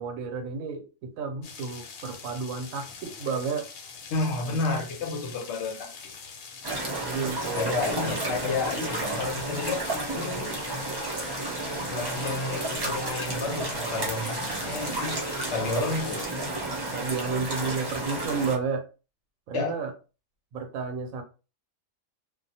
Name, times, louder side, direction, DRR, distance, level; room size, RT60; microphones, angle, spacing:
voice 1, 0.0-3.7 7.0-7.8 8.4-8.5 16.9-18.8 19.5-19.9 20.5-21.2, right 5 dB, 80° right, 1.0 m, -31 dB
sound 1, 1.4-16.3, left 5 dB, 85° left, 1.0 m, -44 dB
voice 2, 4.1-6.1 7.6-10.5 11.9-15.2 15.5-16.3 19.5-19.8, left 3 dB, 65° left, 0.9 m, -31 dB
sound 2, 6.6-18.6, right 2 dB, 40° right, 0.3 m, -32 dB
2.4 x 2.0 x 2.7 m
omnidirectional pair, 1.4 m